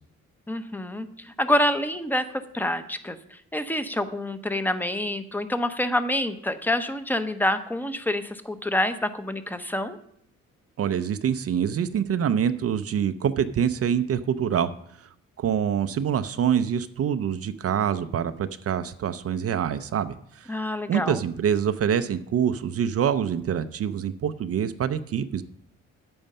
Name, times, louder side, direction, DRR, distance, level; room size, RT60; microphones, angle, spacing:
voice 1, 0.5-10.0 20.5-21.2, left 1 dB, 5° left, 10 dB, 0.9 m, -27 dB
voice 2, 10.8-14.7 15.0-15.1 15.4-20.6 20.9-25.4, right 8 dB, 50° right, 11 dB, 0.6 m, -25 dB
9.0 x 8.7 x 5.5 m, 0.70 s
cardioid pair, 90°, 30 cm